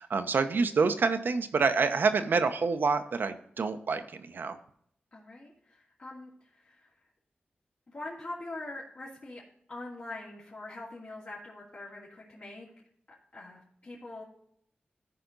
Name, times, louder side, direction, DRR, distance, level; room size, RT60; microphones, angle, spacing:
voice 1, 0.0-4.6, right 4 dB, 70° right, 8 dB, 0.9 m, -27 dB
voice 2, 5.1-6.9 7.9-9.4 9.7-12.8 13.3-14.2, left 2 dB, 55° left, -7 dB, 2.5 m, -43 dB
14.0 x 5.1 x 4.0 m, 0.67 s
wide cardioid pair, 85°, 3 cm